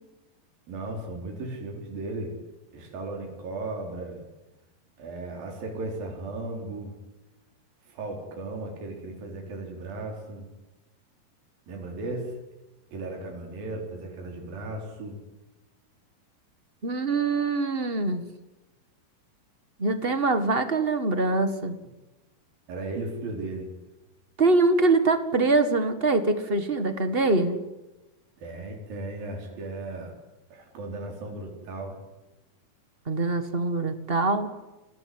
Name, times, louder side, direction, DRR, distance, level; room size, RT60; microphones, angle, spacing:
voice 1, 0.7-2.3 2.7-4.2 5.0-6.9 7.9-10.5 11.7-12.4 12.9-15.2 22.7-23.7 28.4-30.1 30.5-32.0, right 2 dB, 70° right, 1 dB, 6.3 m, -36 dB
voice 2, 16.8-18.2 19.8-21.8 24.4-27.6 33.1-34.5, right 3 dB, 50° right, 9 dB, 0.6 m, -24 dB
29.0 x 20.5 x 9.7 m, 1.0 s
omnidirectional pair, 4.3 m